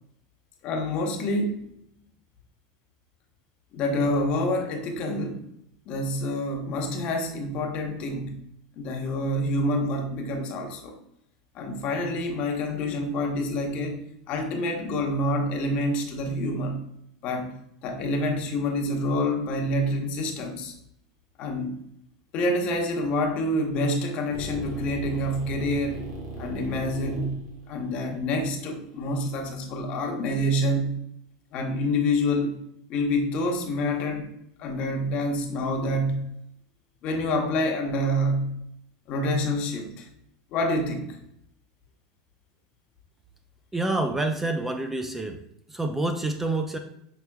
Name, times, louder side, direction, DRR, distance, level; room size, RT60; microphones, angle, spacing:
voice 1, 0.6-1.6 3.7-5.4 5.9-8.4 8.8-11.0 11.5-14.0 14.3-16.8 17.2-17.5 17.8-20.7 21.4-21.7 22.3-26.0 26.4-27.4 27.7-30.9 31.5-32.5 32.9-34.3 34.6-36.3 37.0-38.6 39.1-40.1 40.5-41.2, left 1 dB, 50° left, 3 dB, 0.9 m, -27 dB
sound 1, 24.3-29.4, right 2 dB, 80° right, 1.3 m, -38 dB
voice 2, 43.7-45.4 45.7-46.8, right 2 dB, 10° right, 6 dB, 0.4 m, -27 dB
5.9 x 3.3 x 2.3 m, 0.74 s
supercardioid pair, 120°, 3 cm